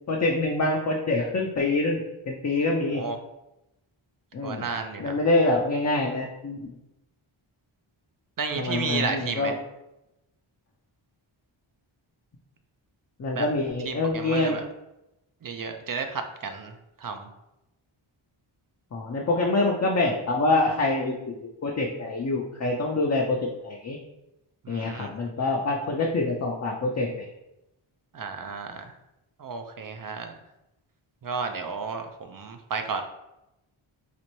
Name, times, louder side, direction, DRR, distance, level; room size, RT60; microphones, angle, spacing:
voice 1, 0.1-2.0 2.3-3.0 4.3-4.7 5.0-6.6 8.6-9.6 13.2-14.6 18.9-23.4 23.6-24.0 24.7-27.3, left 2 dB, 35° left, -1 dB, 0.5 m, -25 dB
voice 2, 4.4-5.2 8.4-9.5 13.3-13.5 13.9-14.6 15.4-16.7 17.0-17.3 24.6-25.1 28.1-28.9 29.4-30.3 31.2-33.0, right 5 dB, 45° right, 6 dB, 0.4 m, -32 dB
4.1 x 2.5 x 3.0 m, 0.91 s
wide cardioid pair, 70°, 50 cm